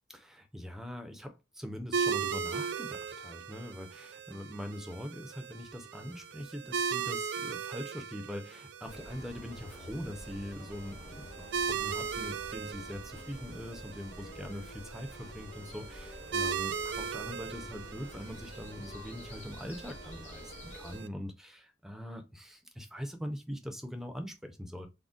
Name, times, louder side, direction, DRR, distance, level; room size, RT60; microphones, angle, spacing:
voice 1, 0.1-24.9, equal, ahead, 0.4 m, -42 dB
sound 1, 1.9-21.1, right 6 dB, 65° right, 0.3 m, -38 dB
sound 2, 8.9-21.0, left 1 dB, 40° left, 0.7 m, -48 dB
3.7 x 2.0 x 2.3 m
head